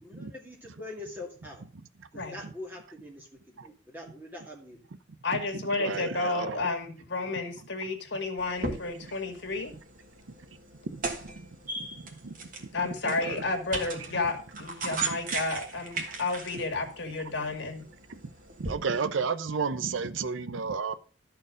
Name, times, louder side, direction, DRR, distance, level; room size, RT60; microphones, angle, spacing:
voice 1, 0.0-1.6 2.1-4.8 13.1-13.2, left 2 dB, 10° right, 2.1 m, -44 dB
voice 2, 5.2-9.7 12.7-17.9, left 3 dB, 65° left, 1.7 m, -31 dB
voice 3, 5.8-6.6 10.9-11.0 12.2-12.3 13.0-13.4 18.6-20.9, right 5 dB, 75° right, 0.6 m, -31 dB
sound 1, 8.4-18.7, right 3 dB, 45° right, 1.5 m, -38 dB
12.5 x 4.5 x 5.0 m
head